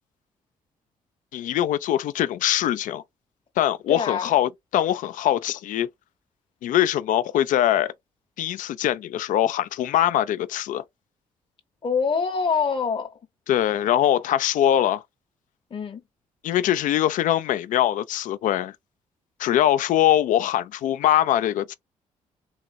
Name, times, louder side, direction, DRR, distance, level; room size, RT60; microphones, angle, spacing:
voice 1, 1.3-3.0 3.6-5.9 6.6-7.9 8.4-10.8 13.5-15.0 16.4-18.7 19.4-21.7, left 12 dB, 65° left, 0.4 m, -22 dB
voice 2, 3.9-4.3 11.8-13.2 15.7-16.0, left 5 dB, 35° left, 0.8 m, -25 dB
3.8 x 3.0 x 2.3 m
supercardioid pair, 55°, 14 cm